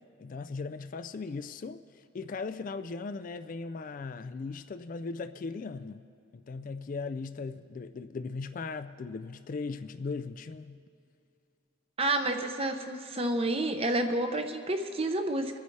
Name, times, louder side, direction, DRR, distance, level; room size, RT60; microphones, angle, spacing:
voice 1, 0.2-1.8 2.1-6.1 6.3-10.8, left 4 dB, 40° left, 0.3 m, -38 dB
voice 2, 12.0-15.6, right 1 dB, 30° right, 0.7 m, -29 dB
27.0 x 9.4 x 3.3 m
head